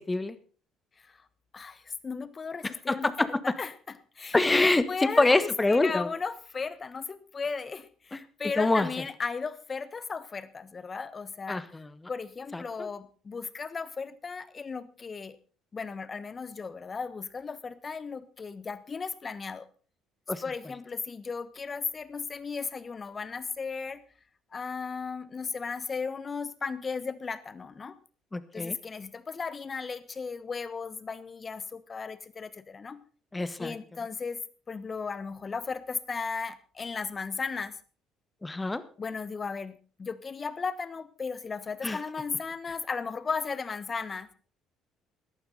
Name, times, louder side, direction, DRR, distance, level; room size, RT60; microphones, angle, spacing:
voice 1, 1.5-3.1 3.4-11.8 12.1-15.4 15.7-19.7 20.4-24.0 24.5-28.0 28.5-33.0 33.6-34.4 34.7-37.8 39.0-44.3, left 5 dB, 35° left, 16 dB, 1.3 m, -35 dB
voice 2, 2.9-3.3 4.3-6.1 8.1-8.2 8.6-8.9 11.5-11.9 12.5-12.9 20.3-20.4 28.3-28.8 33.3-33.7 38.4-38.8 41.8-42.0, left 2 dB, 20° left, 14 dB, 1.4 m, -25 dB
16.5 x 12.0 x 4.1 m, 0.40 s
hypercardioid pair, 65°, 0 cm